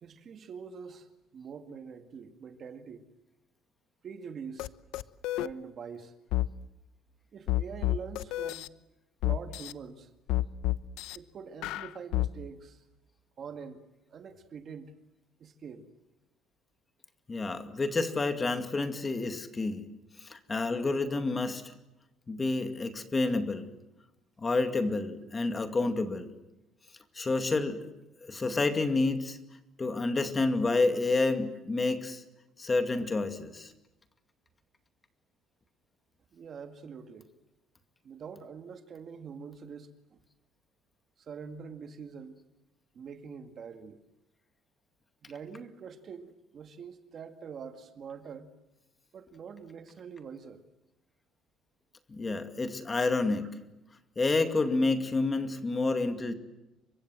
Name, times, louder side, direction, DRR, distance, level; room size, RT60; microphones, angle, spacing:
voice 1, 0.0-3.1 4.0-4.7 5.4-6.1 7.3-8.7 9.2-10.1 11.1-12.8 13.4-13.8 14.1-14.9 15.4-15.9 36.3-37.3 38.0-40.2 41.2-42.4 42.9-44.0 45.2-48.5 49.1-50.6, right 6 dB, 35° right, 8 dB, 2.1 m, -44 dB
sound 1, 4.6-4.7 4.9-5.5 6.3-6.5 7.5-8.7 9.2-9.7 10.3-11.2 11.6-12.3, left 16 dB, 75° left, 1.0 m, -29 dB
voice 2, 17.3-19.8 20.2-21.6 22.3-23.7 24.4-26.3 27.1-27.8 28.2-29.4 29.8-32.2 32.6-33.7 52.1-53.5 54.2-56.3, left 3 dB, 15° left, 8 dB, 2.3 m, -29 dB
30.0 x 25.0 x 7.7 m, 0.93 s
cardioid pair, 175°, 0 cm